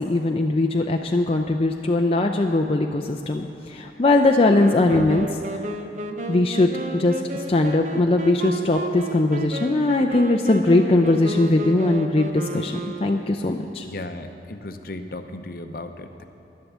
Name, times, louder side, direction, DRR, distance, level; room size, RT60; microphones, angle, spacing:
voice 1, 0.0-5.3 5.5-5.6 6.3-13.9, left 2 dB, 30° left, 3 dB, 0.5 m, -20 dB
Wind instrument woodwind instrument, 4.5-13.5, right 2 dB, 45° right, 0.7 m, -32 dB
voice 2, 13.8-16.2, left 2 dB, 55° left, 7 dB, 0.7 m, -35 dB
11.5 x 10.5 x 7.3 m, 2.7 s
head